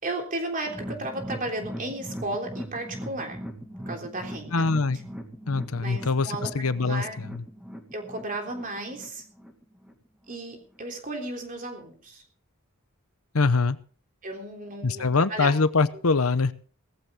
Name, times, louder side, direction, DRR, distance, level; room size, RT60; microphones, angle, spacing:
voice 1, 0.0-3.4 3.8-4.7 5.8-6.5 6.8-7.2 7.9-9.2 10.3-12.2 14.2-15.5, right 2 dB, 40° right, 3 dB, 3.5 m, -34 dB
sound 1, 0.7-9.9 10.3-10.4 10.8-10.9, equal, 5° right, 2.2 m, -40 dB
voice 2, 4.5-5.0 5.5-7.4 13.3-13.8 14.8-16.5, left 4 dB, 75° left, 14 dB, 0.9 m, -24 dB
17.5 x 15.0 x 3.7 m, 0.41 s
head